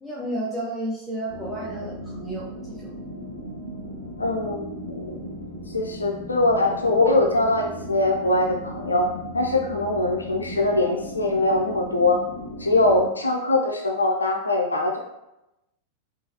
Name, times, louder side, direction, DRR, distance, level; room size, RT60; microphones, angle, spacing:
voice 1, 0.0-2.5 2.8-2.9, right 1 dB, 5° left, -7 dB, 0.7 m, -31 dB
sound 1, 1.3-13.0, equal, 90° right, 0.8 m, -37 dB
voice 2, 4.2-5.3 5.7-9.1 9.3-12.2 12.6-15.0, left 2 dB, 80° left, 1 dB, 0.4 m, -22 dB
3.8 x 2.5 x 2.7 m, 0.90 s
figure-of-eight pair, 90°, 0 cm